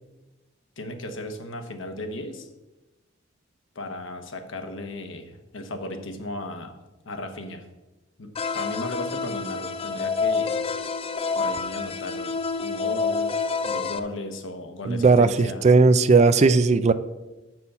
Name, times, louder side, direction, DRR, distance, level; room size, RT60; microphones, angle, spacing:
voice 1, 0.8-2.5 3.7-6.7 7.0-7.6 8.2-10.5 11.3-12.3 12.6-15.6, left 1 dB, 90° left, 5 dB, 1.1 m, -35 dB
sound 1, 8.4-14.0, left 5 dB, 30° left, 0.4 m, -28 dB
voice 2, 14.9-16.9, right 4 dB, 35° right, 12 dB, 0.4 m, -17 dB
7.2 x 6.1 x 5.6 m, 1.1 s
head